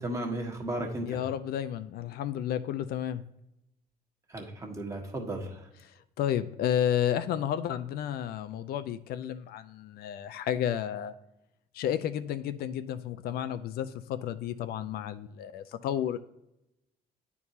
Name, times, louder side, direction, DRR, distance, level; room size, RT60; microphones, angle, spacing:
voice 1, 0.0-1.2 4.3-5.7, right 1 dB, 20° right, 1.5 m, -35 dB
voice 2, 1.1-3.2 5.8-11.1 11.7-16.2, left 10 dB, 65° left, 0.4 m, -32 dB
9.6 x 4.6 x 2.7 m
cardioid pair, 110°, 17 cm